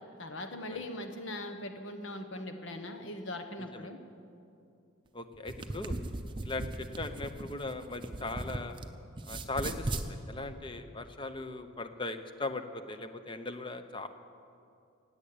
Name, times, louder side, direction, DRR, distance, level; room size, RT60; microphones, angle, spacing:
voice 1, 0.2-4.0, left 1 dB, 65° left, 6 dB, 1.3 m, -40 dB
voice 2, 3.6-3.9 5.1-5.9 6.4-8.8 9.3-14.1, left 2 dB, 25° left, 9 dB, 0.7 m, -39 dB
sound 1, 5.3-8.9 9.2-10.1, right 2 dB, 25° right, 0.7 m, -37 dB
17.0 x 8.7 x 8.7 m, 2.5 s
head